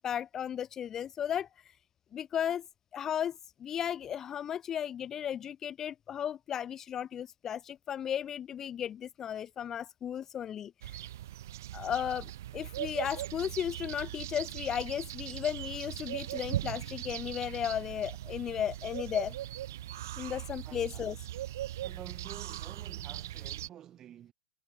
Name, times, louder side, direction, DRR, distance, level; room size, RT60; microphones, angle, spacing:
voice 1, 0.0-1.8 2.1-2.7 2.9-11.0 11.7-19.4 20.2-21.2, left 9 dB, 20° left, 0.3 m, -35 dB
sound 1, 10.8-23.7, right 13 dB, 55° right, 2.7 m, -40 dB
voice 2, 20.6-21.1 21.8-24.3, right 11 dB, 25° right, 5.1 m, -50 dB
figure-of-eight pair, 105°, 2 cm